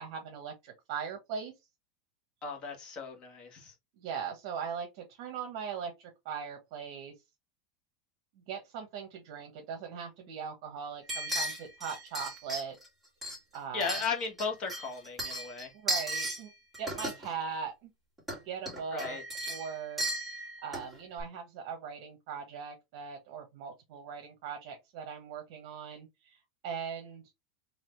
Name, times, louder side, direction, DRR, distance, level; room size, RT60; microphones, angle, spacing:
voice 1, 0.0-1.5 4.0-7.1 8.4-12.8 13.5-14.0 15.7-16.5 16.8-17.9 18.4-19.2 19.5-20.0 20.6-27.2, right 6 dB, 50° right, 1.1 m, -40 dB
voice 2, 2.4-3.7 13.7-15.7 18.9-19.2, left 5 dB, 30° left, 1.2 m, -36 dB
sound 1, 11.1-12.9 13.2-14.4 14.7-16.4 16.7-17.3 18.2-18.4 18.7-20.9 21.2-21.3, right 1 dB, 5° right, 2.1 m, -35 dB
4.0 x 2.6 x 3.2 m
supercardioid pair, 165°, 3 cm